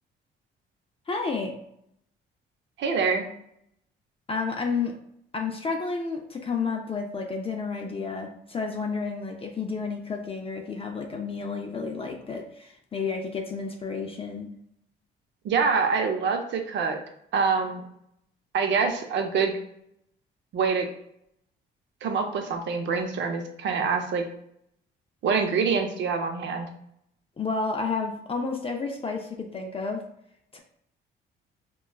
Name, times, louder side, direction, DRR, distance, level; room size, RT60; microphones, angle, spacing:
voice 1, 1.1-1.6 4.3-5.0 5.3-14.5 27.4-30.0 30.5-30.6, left 4 dB, 30° left, 2 dB, 0.5 m, -31 dB
voice 2, 2.8-3.2 15.4-17.0 17.3-17.8 18.5-19.6 20.5-20.9 22.0-24.3 25.2-26.7, right 5 dB, 65° right, 4 dB, 0.7 m, -25 dB
4.3 x 2.3 x 2.3 m, 0.73 s
cardioid pair, 90°, 20 cm